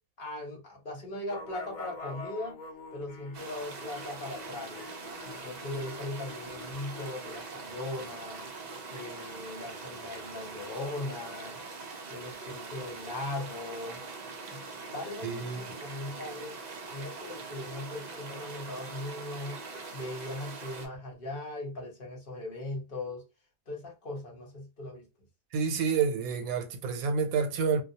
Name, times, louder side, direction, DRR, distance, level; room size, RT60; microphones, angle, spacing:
voice 1, 0.2-2.6 2.9-4.8 5.2-8.5 8.9-11.6 12.1-14.0 14.5-14.6 14.9-16.6 16.9-19.6 19.9-23.2 23.7-25.0, left 2 dB, 45° left, 0.9 m, -39 dB
sound 1, 1.3-7.4, left 4 dB, 75° left, 1.0 m, -47 dB
sound 2, 3.3-20.9, right 4 dB, 60° right, 0.4 m, -43 dB
voice 2, 15.2-15.6 25.5-27.8, right 6 dB, 85° right, 1.0 m, -28 dB
2.3 x 2.2 x 2.7 m
omnidirectional pair, 1.4 m